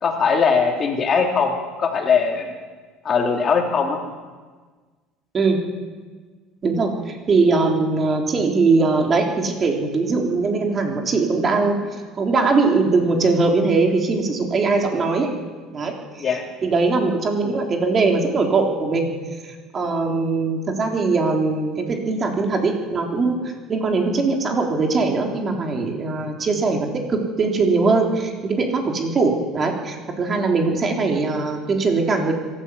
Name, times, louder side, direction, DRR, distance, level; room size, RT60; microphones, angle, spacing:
voice 1, 0.0-1.5 1.8-2.5 3.0-4.0 16.2-16.5, left 5 dB, 35° left, 2 dB, 3.3 m, -20 dB
voice 2, 6.6-11.8 12.2-15.3 15.7-16.3 16.6-19.1 19.7-23.4 23.7-32.3, right 3 dB, 30° right, 1 dB, 3.8 m, -21 dB
25.5 x 13.0 x 8.4 m, 1.4 s
supercardioid pair, 110°, 0 cm